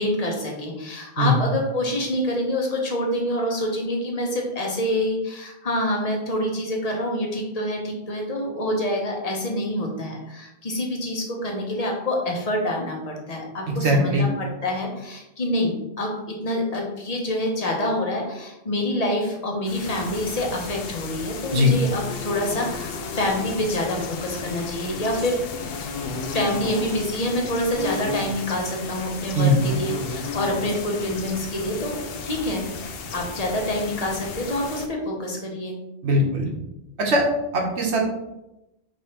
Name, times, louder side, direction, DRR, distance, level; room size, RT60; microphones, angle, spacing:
voice 1, 0.0-16.1 16.4-25.5 26.3-32.0 32.3-32.6 33.1-35.7, left 1 dB, 40° left, 0 dB, 0.9 m, -26 dB
voice 2, 13.7-14.3 21.5-21.7 29.3-29.6 36.0-36.5 37.0-37.2 37.5-38.1, left 1 dB, 85° right, 0 dB, 1.2 m, -20 dB
sound 1, 19.7-34.9, left 4 dB, 65° left, 0.7 m, -33 dB
5.2 x 3.2 x 2.9 m, 0.93 s
omnidirectional pair, 1.1 m